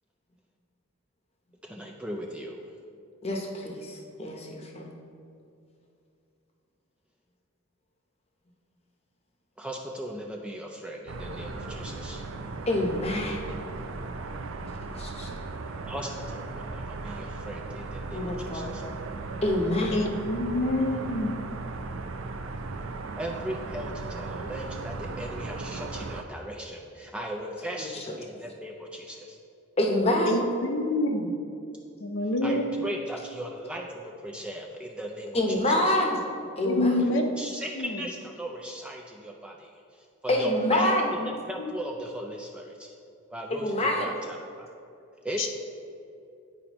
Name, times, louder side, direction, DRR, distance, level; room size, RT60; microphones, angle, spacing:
voice 1, 1.6-2.6 9.6-12.2 15.9-18.8 23.1-29.4 32.4-35.4 35.7-36.0 37.4-39.7 40.2-41.2 41.5-42.9 43.3-44.7 45.2-45.5, equal, 5° right, 0 dB, 0.3 m, -38 dB
voice 2, 3.2-4.9 12.7-13.4 14.9-15.3 18.1-18.7 19.4-20.0 27.8-28.2 29.8-30.4 35.3-36.2 36.6-37.1 40.3-41.3 43.5-44.1, left 1 dB, 30° left, 1 dB, 0.8 m, -27 dB
sound 1, 11.1-26.2, right 3 dB, 75° right, 0.5 m, -37 dB
voice 3, 19.9-21.3 30.3-31.2 32.0-32.6 36.6-37.2 37.7-38.0 40.6-40.9 41.7-41.8 45.4-45.5, left 1 dB, 65° left, 3 dB, 0.7 m, -27 dB
9.8 x 4.9 x 3.0 m, 2.6 s
head